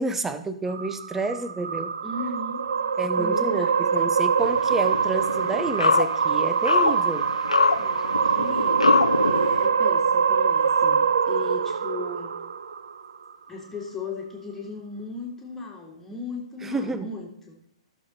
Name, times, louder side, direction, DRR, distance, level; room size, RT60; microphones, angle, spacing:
voice 1, 0.0-1.9 3.0-7.3 16.6-17.1, right 3 dB, 10° right, 11 dB, 0.8 m, -29 dB
sound 1, 0.7-13.2, right 6 dB, 60° right, 0.5 m, -24 dB
voice 2, 2.0-2.7 3.2-3.7 7.8-8.9 9.2-12.4 13.5-17.3, left 3 dB, 10° left, -2 dB, 2.0 m, -36 dB
sound 2, 4.4-9.7, left 3 dB, 80° left, 0.8 m, -24 dB
14.5 x 6.7 x 4.2 m, 0.75 s
figure-of-eight pair, 115°, 3 cm